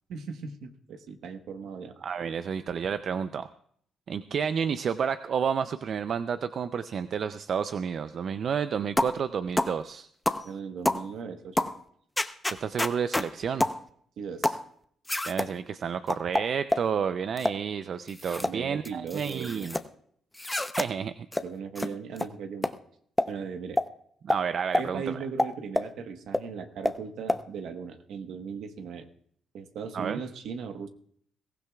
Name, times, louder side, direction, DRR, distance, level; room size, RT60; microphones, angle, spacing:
voice 1, 0.1-1.9 10.4-11.7 14.2-14.6 18.4-19.7 21.4-22.7 23.3-23.8 24.8-29.1 29.5-30.9, right 6 dB, 75° right, 7 dB, 1.2 m, -38 dB
voice 2, 2.0-3.5 4.1-10.1 12.6-13.7 15.2-19.8 20.8-21.1 24.2-25.2 29.9-30.2, right 7 dB, 55° right, 11 dB, 0.5 m, -30 dB
sound 1, 9.0-9.2 9.6-9.8 10.3-10.5 10.8-11.0 11.6-11.8 12.2-13.3 13.6-13.8 14.4-14.6 15.1-15.5 16.1-16.9 17.4-17.6 18.1-18.5 18.8-19.8 20.4-20.9 21.3-21.4 21.8-21.9 22.2-22.3 22.6-22.7 23.2-23.3 23.8-23.9 24.3-24.4 24.7-24.9 25.4-25.9 26.3-26.4 26.8-27.0 27.3-27.4, left 1 dB, 10° left, 0.7 m, -27 dB
22.0 x 15.5 x 2.4 m, 0.63 s
cardioid pair, 90°, 0 cm